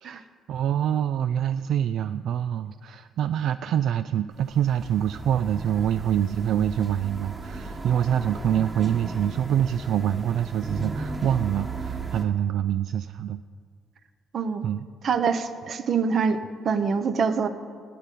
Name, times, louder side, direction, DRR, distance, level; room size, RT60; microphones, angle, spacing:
voice 1, 0.0-13.4 14.6-14.9, right 10 dB, 70° right, 12 dB, 0.3 m, -25 dB
Room Ambience, 4.3-12.2, right 3 dB, 25° right, 1.5 m, -36 dB
voice 2, 14.3-14.7 15.0-16.4 16.6-17.5, right 5 dB, 45° right, 10 dB, 0.8 m, -25 dB
14.0 x 9.1 x 8.4 m, 2.1 s
cardioid pair, 145°, 0 cm